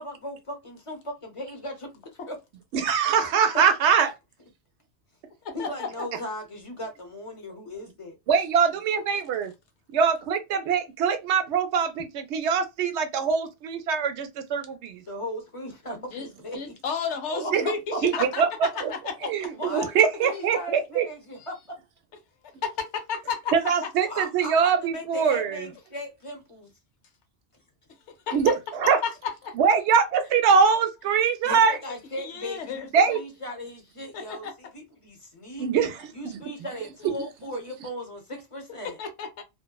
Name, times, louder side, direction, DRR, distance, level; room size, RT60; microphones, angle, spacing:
voice 1, 0.0-1.9 2.3-2.4 3.2-3.6 5.5-8.2 15.0-16.8 17.3-18.0 19.5-21.8 24.0-26.7 31.4-35.9 36.1-39.0, equal, 35° left, 0.7 m, -37 dB
voice 2, 2.7-4.1 8.3-9.5 9.9-15.0 17.5-17.6 18.0-18.5 18.8-18.9 19.2-21.0 23.5-25.7 28.3-29.0 29.6-31.8 32.9-33.2 35.6-36.0 36.2-36.4, right 6 dB, 80° right, 0.9 m, -23 dB
voice 3, 5.4-5.9 16.1-16.3 16.5-18.4 18.7-19.3 22.6-23.5 28.3-28.4 29.0-29.5 31.7-31.8 32.2-32.9 34.1-34.5 38.8-39.4, left 6 dB, 85° left, 1.0 m, -32 dB
2.6 x 2.1 x 2.2 m
omnidirectional pair, 1.2 m